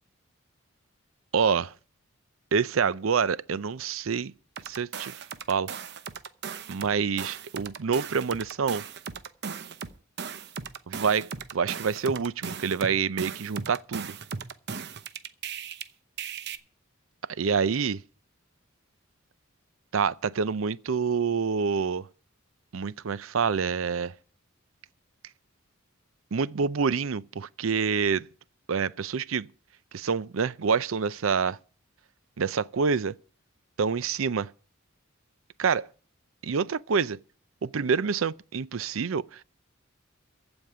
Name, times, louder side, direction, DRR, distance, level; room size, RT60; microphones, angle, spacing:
voice 1, 1.3-1.7 2.5-4.3 4.7-5.7 6.7-8.8 10.9-14.1 17.4-18.0 19.9-22.1 22.7-24.1 26.3-28.3 28.7-29.5 29.9-31.6 32.4-33.2 33.8-34.5 35.6-35.9 36.4-37.2 37.6-39.4, right 6 dB, 75° right, 0.5 m, -27 dB
sound 1, 4.6-6.9 7.2-15.8 16.2-16.6, right 6 dB, 55° right, 0.8 m, -37 dB
15.0 x 5.3 x 9.6 m
head